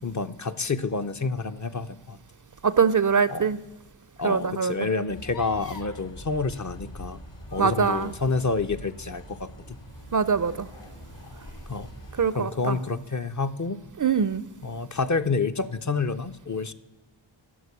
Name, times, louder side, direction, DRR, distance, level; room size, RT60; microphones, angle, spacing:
voice 1, 0.0-2.2 3.3-3.5 4.2-7.2 7.5-9.8 11.7-11.9 12.4-13.8 14.6-16.7, left 4 dB, 40° left, 9 dB, 0.5 m, -28 dB
voice 2, 2.6-3.6 4.2-4.7 7.6-8.1 10.1-10.7 12.2-12.8 14.0-14.4, right 6 dB, 45° right, 16 dB, 0.4 m, -23 dB
sound 1, 5.1-12.4, equal, 65° left, 2.6 m, -43 dB
11.0 x 6.6 x 8.2 m, 1.1 s
wide cardioid pair, 45°, 47 cm